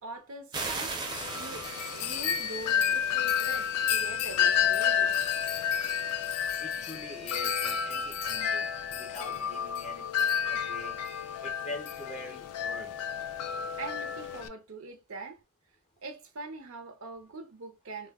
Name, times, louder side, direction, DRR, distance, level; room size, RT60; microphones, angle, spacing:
voice 1, 0.0-1.7 1.9-5.2 13.8-15.4 16.0-18.1, right 3 dB, 70° right, 0.5 m, -43 dB
sound 1, 0.5-3.8, right 3 dB, 20° right, 0.5 m, -38 dB
Wind chime, 1.1-14.5, left 8 dB, 90° left, 0.3 m, -30 dB
voice 2, 6.6-11.0 11.4-13.0, left 1 dB, 30° left, 0.5 m, -44 dB
2.1 x 2.1 x 3.3 m
head